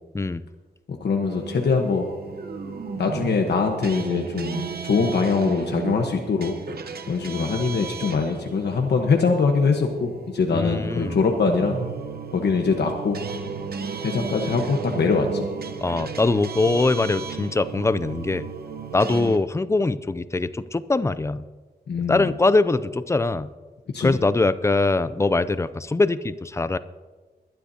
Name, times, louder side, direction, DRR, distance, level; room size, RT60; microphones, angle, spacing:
voice 1, 0.9-2.1 3.0-6.6 7.1-11.8 12.3-13.2 14.0-15.5 21.9-22.3 23.9-24.2, left 4 dB, 85° left, 3 dB, 1.2 m, -23 dB
sound 1, 1.3-19.4, right 5 dB, 65° right, 0.9 m, -34 dB
voice 2, 10.5-11.2 15.8-18.5 18.9-21.4 22.1-23.5 24.0-26.8, left 3 dB, 15° left, 15 dB, 0.4 m, -22 dB
21.0 x 12.0 x 2.8 m, 1.3 s
wide cardioid pair, 170°, 17 cm